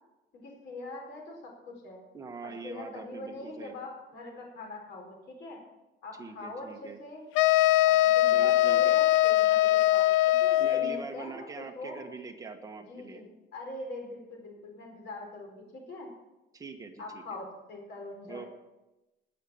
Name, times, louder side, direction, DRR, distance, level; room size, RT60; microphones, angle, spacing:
voice 1, 0.3-2.0 2.4-5.6 6.0-7.2 7.9-12.0 12.9-16.1 17.0-18.5, left 2 dB, 60° left, 1 dB, 4.6 m, -43 dB
voice 2, 2.1-3.8 6.2-7.0 8.3-9.0 10.6-13.2 16.5-17.2 18.3-18.5, right 4 dB, 15° right, 3 dB, 1.3 m, -43 dB
sound 1, 7.3-11.0, left 15 dB, 85° left, 0.4 m, -22 dB
19.0 x 6.6 x 7.1 m, 1.0 s
cardioid pair, 170°, 20 cm